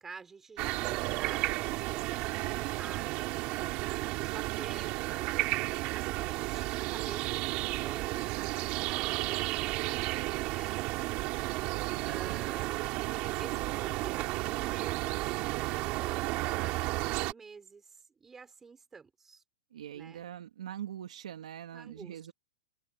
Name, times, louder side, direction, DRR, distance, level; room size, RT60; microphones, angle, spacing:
voice 1, 0.0-3.1 4.2-5.4 5.9-10.8 12.0-13.0 13.4-19.4 19.9-20.3 21.7-22.2, right 5 dB, 10° right, 5.8 m, -49 dB
sound 1, 0.6-17.3, right 21 dB, 25° right, 4.0 m, -33 dB
voice 2, 11.8-12.4 19.7-22.3, right 10 dB, 70° right, 2.6 m, -43 dB
supercardioid pair, 175°, 4 cm